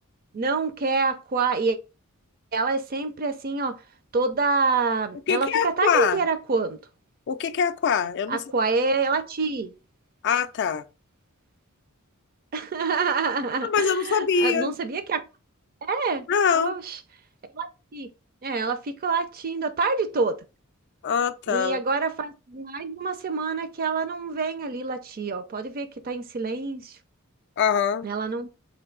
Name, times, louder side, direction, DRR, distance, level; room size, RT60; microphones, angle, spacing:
voice 1, 0.3-1.8 2.5-3.8 4.1-6.8 8.3-9.7 12.5-15.2 15.8-16.3 16.5-17.0 17.5-18.1 18.4-20.4 21.5-26.9 28.0-28.5, right 4 dB, 45° right, 0.5 m, -27 dB
voice 2, 5.3-6.2 7.3-8.4 10.2-10.8 13.6-14.7 16.3-16.8 21.0-21.8 27.6-28.1, left 6 dB, 55° left, 0.4 m, -23 dB
3.4 x 2.6 x 3.8 m
head